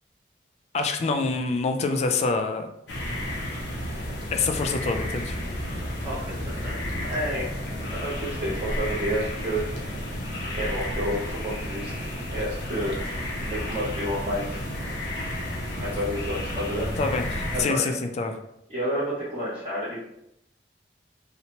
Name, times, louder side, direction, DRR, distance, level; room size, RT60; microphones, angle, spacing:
voice 1, 0.7-2.7 4.3-5.4 13.6-13.7 17.0-18.3, left 4 dB, 40° left, 5 dB, 0.3 m, -26 dB
sound 1, 2.9-17.6, left 1 dB, 85° left, 0.6 m, -32 dB
voice 2, 6.0-6.8 7.1-7.5 8.0-9.8 10.5-12.0 12.3-13.0 13.5-14.6 15.8-16.9 17.5-17.9 18.7-20.1, equal, 30° right, -10 dB, 0.7 m, -30 dB
2.8 x 2.1 x 2.8 m, 0.79 s
head